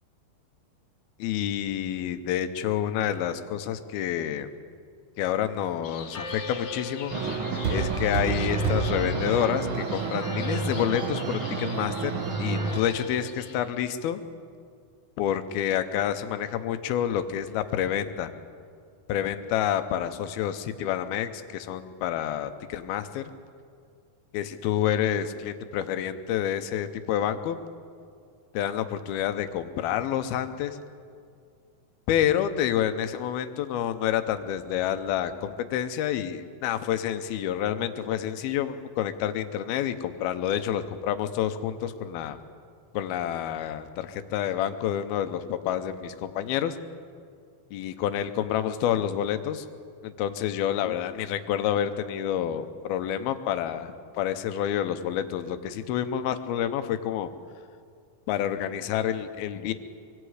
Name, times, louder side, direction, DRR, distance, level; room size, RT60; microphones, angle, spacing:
voice 1, 1.2-4.5 5.2-7.1 7.7-14.2 15.2-18.3 19.1-23.2 24.3-27.6 28.5-30.8 32.1-42.4 42.9-46.8 47.7-49.7 50.0-57.3 58.3-59.7, left 10 dB, 85° left, 10 dB, 2.8 m, -28 dB
sound 1, 5.8-13.6, left 4 dB, 55° left, 1.8 m, -40 dB
sound 2, 7.1-12.8, right 4 dB, 60° right, 1.4 m, -29 dB
24.5 x 23.0 x 5.0 m, 2.2 s
omnidirectional pair, 4.3 m